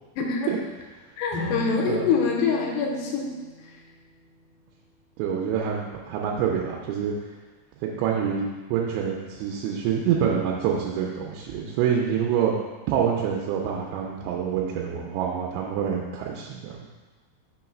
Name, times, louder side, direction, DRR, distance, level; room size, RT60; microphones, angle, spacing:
voice 1, 0.2-0.5 1.2-3.3, left 5 dB, 85° left, 0 dB, 2.8 m, -25 dB
sound 1, 1.3-4.5, left 1 dB, 50° right, 0.4 m, -37 dB
voice 2, 5.2-7.1 7.8-12.5 12.9-16.7, right 8 dB, 90° right, -1 dB, 2.9 m, -26 dB
6.5 x 3.1 x 5.9 m, 1.3 s
omnidirectional pair, 4.9 m